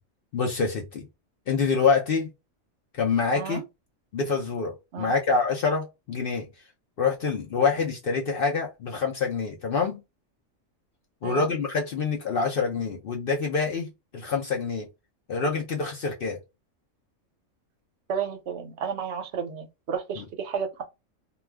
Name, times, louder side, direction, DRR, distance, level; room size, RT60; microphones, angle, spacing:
voice 1, 0.3-1.1 1.5-2.3 2.9-3.6 4.1-6.5 7.0-10.0 11.2-14.9 15.3-16.4 20.2-20.3, left 5 dB, 60° left, 0.6 m, -26 dB
voice 2, 18.1-20.8, right 7 dB, 70° right, 0.8 m, -32 dB
2.3 x 2.2 x 3.3 m
omnidirectional pair, 1.3 m